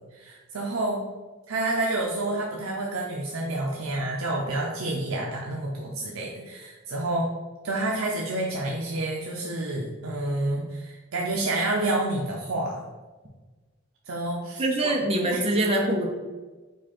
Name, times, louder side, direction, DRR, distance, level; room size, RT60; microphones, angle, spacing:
voice 1, 0.1-1.0 1.5-7.3 7.6-12.8 14.1-14.9 15.3-15.4, right 2 dB, 85° right, -2 dB, 0.6 m, -29 dB
voice 2, 14.6-16.1, right 1 dB, 25° right, 0 dB, 0.6 m, -24 dB
4.9 x 2.3 x 4.3 m, 1.3 s
head